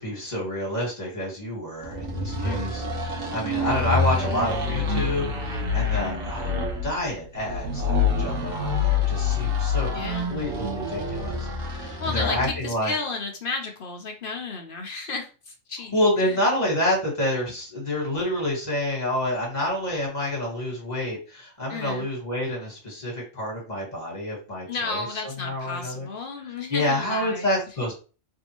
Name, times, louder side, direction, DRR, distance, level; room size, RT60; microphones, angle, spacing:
voice 1, 0.0-6.5 6.8-10.0 10.3-12.9 15.9-26.1 26.7-27.9, left 1 dB, 35° left, -4 dB, 1.6 m, -28 dB
sound 1, 1.8-12.6, left 4 dB, 75° right, 1.4 m, -27 dB
voice 2, 2.4-2.9 5.9-6.3 9.9-10.3 12.0-16.4 21.7-22.1 24.7-27.6 27.8-27.9, left 3 dB, 50° left, 3 dB, 0.7 m, -33 dB
3.4 x 2.6 x 2.9 m, 0.34 s
omnidirectional pair, 1.3 m